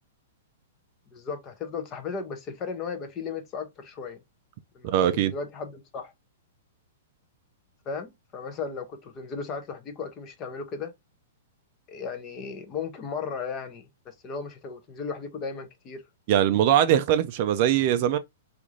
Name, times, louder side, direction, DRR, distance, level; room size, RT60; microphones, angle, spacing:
voice 1, 1.1-4.2 4.7-6.1 7.9-10.9 11.9-16.0, left 5 dB, 20° left, 0.6 m, -35 dB
voice 2, 4.8-5.3 16.3-18.2, right 11 dB, 35° right, 0.3 m, -21 dB
3.7 x 2.4 x 3.0 m
hypercardioid pair, 170°, 0 cm